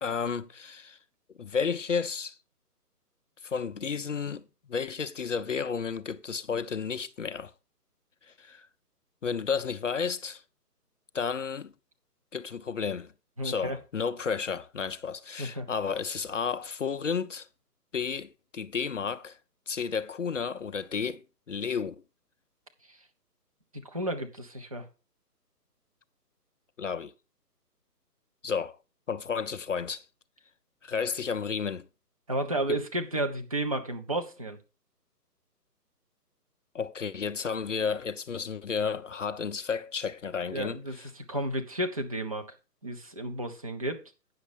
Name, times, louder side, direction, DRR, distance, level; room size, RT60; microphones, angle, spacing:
voice 1, 0.0-1.0 1.4-2.4 3.4-7.5 8.3-8.7 9.2-10.4 11.1-11.7 12.3-13.1 13.4-17.5 17.9-19.4 19.7-21.2 21.5-22.0 26.8-27.1 28.4-28.8 29.1-30.0 30.8-31.9 36.7-41.1, left 6 dB, 50° left, 0.5 m, -32 dB
voice 2, 13.4-13.8 15.4-15.7 22.9-23.0 23.8-24.9 32.3-34.6 40.5-42.5 42.8-44.0, right 1 dB, 20° right, 0.7 m, -32 dB
9.3 x 6.5 x 4.9 m
figure-of-eight pair, 155°, 48 cm